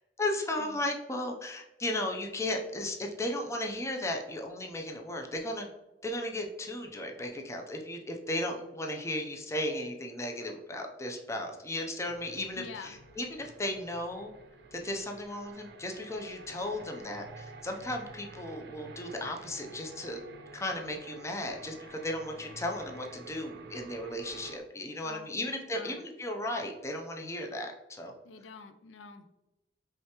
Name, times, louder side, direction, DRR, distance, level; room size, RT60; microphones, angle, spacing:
voice 1, 0.2-5.7 6.0-14.3 14.7-20.2 20.5-28.1, left 1 dB, 15° left, 2 dB, 0.4 m, -35 dB
sound 1, 12.1-24.6, right 3 dB, 60° right, 0.6 m, -50 dB
voice 2, 12.5-13.0 25.0-26.0 28.2-29.3, left 5 dB, 80° left, 8 dB, 0.4 m, -47 dB
4.8 x 3.2 x 2.8 m, 0.98 s
head